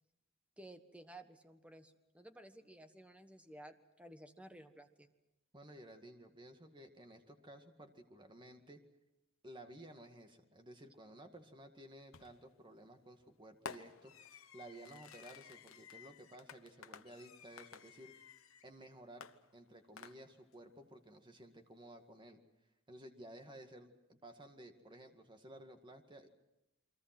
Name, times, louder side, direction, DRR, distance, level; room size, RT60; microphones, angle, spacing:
voice 1, 0.6-5.1, right 1 dB, 5° right, 7 dB, 1.4 m, -55 dB
voice 2, 5.5-8.8 9.4-18.1 18.6-19.3 19.5-22.4 22.9-26.3, right 1 dB, 20° right, 5 dB, 2.0 m, -55 dB
Fireworks, 12.1-12.5 13.7-18.7 19.2-20.5, left 6 dB, 70° left, 1.0 m, -54 dB
29.0 x 23.0 x 6.1 m, 0.92 s
head